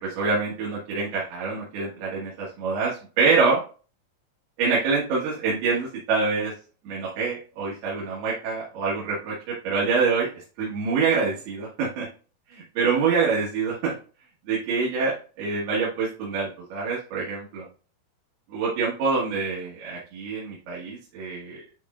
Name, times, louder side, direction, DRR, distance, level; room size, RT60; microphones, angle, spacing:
voice 1, 0.0-3.6 4.6-6.5 6.9-12.1 12.5-14.0 14.5-17.7 18.5-21.6, right 4 dB, 85° right, -5 dB, 3.6 m, -26 dB
10.5 x 4.2 x 2.4 m, 0.37 s
omnidirectional pair, 4.4 m